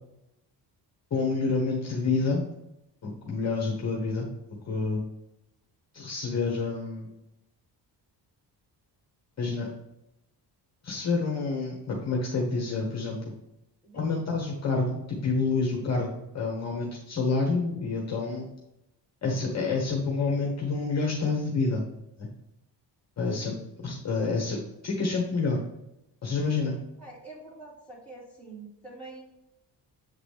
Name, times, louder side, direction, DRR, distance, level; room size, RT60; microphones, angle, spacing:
voice 1, 1.1-2.4 3.0-4.3 4.6-5.0 5.9-7.1 9.4-9.7 10.8-13.3 13.9-18.5 19.2-21.8 22.2-22.3 23.2-25.6 26.2-26.8, left 4 dB, 40° left, -1 dB, 1.1 m, -28 dB
voice 2, 13.8-14.3 15.7-15.9 23.3-23.4 27.0-29.2, right 3 dB, 5° left, -6 dB, 2.4 m, -46 dB
8.2 x 4.0 x 3.4 m, 0.87 s
cardioid pair, 150°, 41 cm